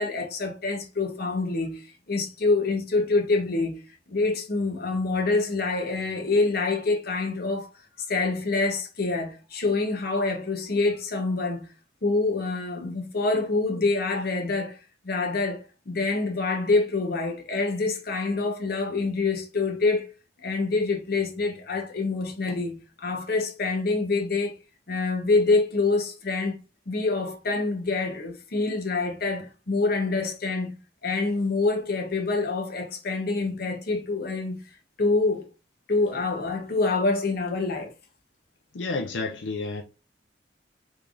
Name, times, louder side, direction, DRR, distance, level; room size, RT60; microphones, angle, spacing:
voice 1, 0.0-7.7 8.0-11.7 12.0-14.8 15.0-20.1 20.4-24.5 24.9-26.6 26.9-30.8 31.0-34.6 35.0-35.4 35.9-37.9, left 3 dB, 60° left, 0.9 m, -26 dB
voice 2, 38.7-39.8, left 3 dB, 85° left, 0.5 m, -30 dB
3.5 x 3.3 x 2.5 m
head